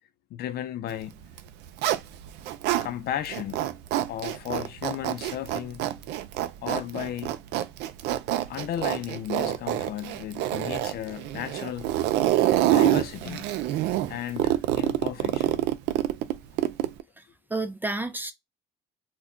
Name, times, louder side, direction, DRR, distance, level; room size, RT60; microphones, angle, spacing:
voice 1, 0.3-1.2 2.8-3.7 4.1-5.9 6.6-7.3 8.5-12.0 12.6-13.5 14.1-15.6, left 11 dB, 65° left, 0.5 m, -34 dB
Zipper (clothing), 1.2-2.9 3.2-17.0, right 13 dB, 85° right, 0.4 m, -26 dB
voice 2, 17.2-18.3, right 2 dB, 10° right, 0.4 m, -31 dB
2.2 x 2.2 x 3.6 m
cardioid pair, 110°, 17 cm